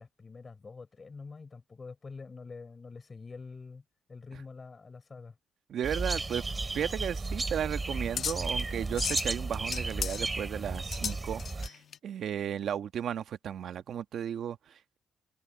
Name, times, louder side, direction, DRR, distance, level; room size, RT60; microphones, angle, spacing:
voice 1, 0.0-3.8 4.1-5.3, left 4 dB, 30° left, 5.0 m, -46 dB
voice 2, 5.7-15.0, right 9 dB, 65° right, 1.4 m, -35 dB
sound 1, 5.8-11.7, right 3 dB, 25° right, 6.0 m, -34 dB
sound 2, 6.8-12.0, left 7 dB, 55° left, 1.1 m, -38 dB
cardioid pair, 90°, 0 cm